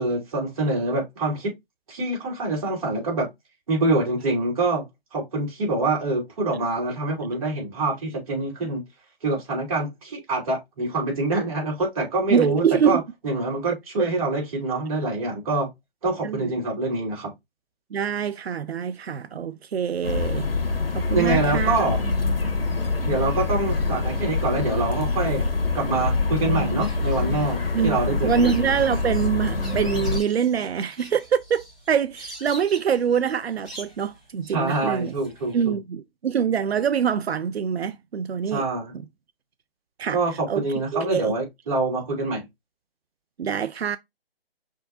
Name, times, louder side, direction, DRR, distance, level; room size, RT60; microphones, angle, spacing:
voice 1, 0.0-1.5 1.9-3.3 3.7-4.8 5.1-8.8 9.2-15.7 16.0-17.3 21.1-22.1 23.0-25.5 25.7-28.5 34.5-35.8 38.5-38.9 40.1-42.4, right 2 dB, 35° right, 2.8 m, -25 dB
voice 2, 12.3-13.0 14.0-14.1 16.2-16.6 17.9-21.8 27.7-35.1 35.5-38.6 40.0-40.2 40.5-41.3 43.4-44.0, right 7 dB, 85° right, 0.5 m, -25 dB
sound 1, 20.0-30.2, left 3 dB, 65° left, 1.3 m, -25 dB
sound 2, 26.8-35.5, equal, ahead, 2.4 m, -44 dB
5.5 x 3.6 x 2.4 m
figure-of-eight pair, 155°, 31 cm